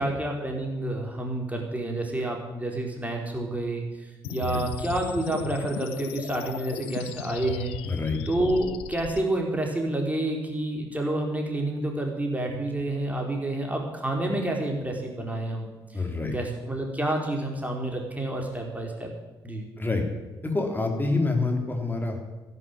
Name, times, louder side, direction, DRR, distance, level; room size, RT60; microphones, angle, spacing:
voice 1, 0.0-3.8 4.3-7.7 8.3-15.7 16.2-19.1 19.4-19.7, right 1 dB, 15° right, 1 dB, 4.5 m, -29 dB
sound 1, 4.2-9.2, left 11 dB, 60° left, 0.7 m, -37 dB
voice 2, 4.2-4.6 7.9-8.2 15.9-16.3 19.8-20.0 20.4-22.2, left 3 dB, 15° left, 3 dB, 3.5 m, -27 dB
13.5 x 11.0 x 8.8 m, 1.1 s
figure-of-eight pair, 45°, 11 cm